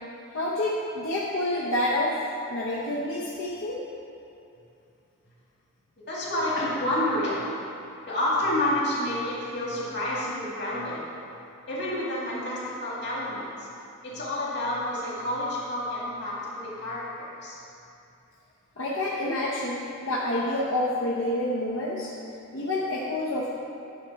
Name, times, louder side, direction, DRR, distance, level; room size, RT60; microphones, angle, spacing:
voice 1, 0.3-2.1 2.5-3.8 18.8-22.1 22.5-23.5, left 1 dB, 70° left, -6 dB, 0.8 m, -28 dB
voice 2, 6.1-7.5 8.1-11.1 11.7-13.7 14.0-17.6, left 1 dB, 50° left, -6 dB, 1.9 m, -29 dB
10.0 x 3.7 x 5.8 m, 2.7 s
head